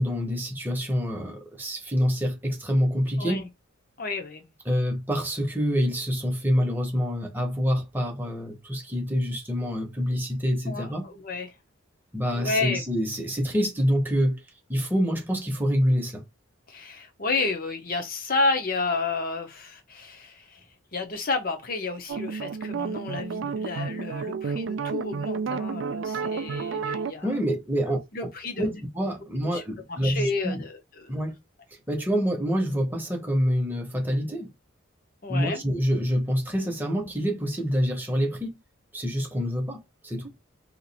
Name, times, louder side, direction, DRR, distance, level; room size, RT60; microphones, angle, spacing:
voice 1, 0.0-3.5 4.7-11.1 12.1-14.4 14.7-16.2 27.2-28.0 28.6-30.6 31.1-31.4 31.9-34.5 35.3-38.5 38.9-40.3, equal, 10° right, 0.8 m, -26 dB
voice 2, 4.0-4.4 10.7-11.5 12.3-12.8 16.7-20.6 20.9-27.3 27.9-28.8 29.5-29.6 29.9-31.1 35.2-35.6, left 3 dB, 45° left, 0.8 m, -31 dB
sound 1, 22.1-27.1, right 5 dB, 60° right, 0.3 m, -31 dB
2.9 x 2.5 x 4.0 m
head